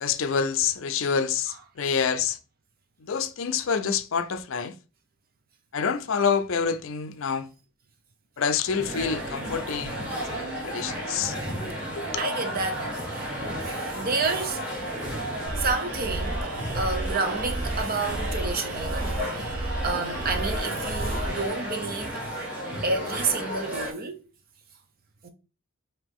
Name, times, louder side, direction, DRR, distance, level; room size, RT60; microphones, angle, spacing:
voice 1, 0.0-2.4 3.1-4.7 5.7-7.5 8.4-11.3 12.0-12.1, left 6 dB, 65° left, 0.5 m, -27 dB
sound 1, 8.6-23.9, equal, 5° right, 1.7 m, -33 dB
voice 2, 12.2-13.4 13.6-14.6 15.6-22.2 22.8-24.2 25.2-25.3, right 4 dB, 45° right, 0.7 m, -30 dB
sound 2, 15.5-21.5, right 2 dB, 90° right, 0.9 m, -32 dB
4.9 x 2.9 x 3.6 m
head